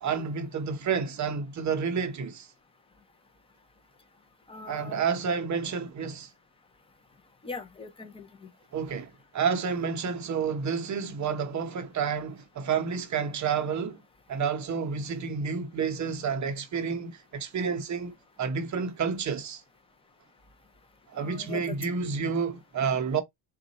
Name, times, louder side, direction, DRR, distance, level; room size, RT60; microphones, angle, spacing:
voice 1, 0.0-2.5 4.7-6.3 8.7-14.0 14.3-19.6 21.1-23.2, right 6 dB, 40° right, 0.7 m, -30 dB
voice 2, 4.5-5.0 7.4-8.5 21.2-21.7, left 4 dB, 15° left, 0.4 m, -41 dB
4.0 x 2.3 x 3.9 m
cardioid pair, 170°, 46 cm